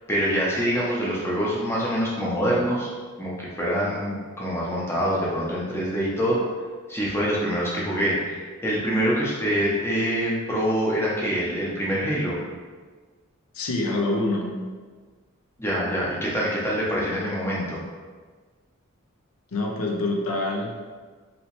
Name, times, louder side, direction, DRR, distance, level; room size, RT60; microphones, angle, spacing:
voice 1, 0.1-2.9 3.2-6.4 6.9-12.4 15.6-17.8, equal, 10° left, -6 dB, 0.6 m, -25 dB
voice 2, 13.5-14.5 19.5-20.7, left 2 dB, 85° left, 1 dB, 0.5 m, -26 dB
3.0 x 2.8 x 3.0 m, 1.5 s
head